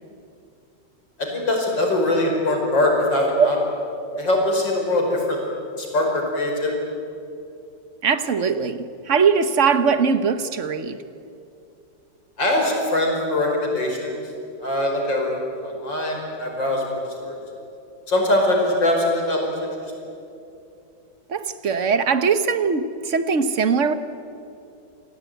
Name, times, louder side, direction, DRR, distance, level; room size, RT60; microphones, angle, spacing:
voice 1, 1.2-3.6 4.2-5.4 5.8-6.8 12.4-14.1 14.6-15.3 15.6-16.8 17.2-17.4 18.1-19.7, left 1 dB, 85° left, 5.9 m, -22 dB
voice 2, 8.0-11.0 21.3-23.9, right 5 dB, 45° right, 1.3 m, -21 dB
28.0 x 19.0 x 9.2 m
omnidirectional pair, 2.0 m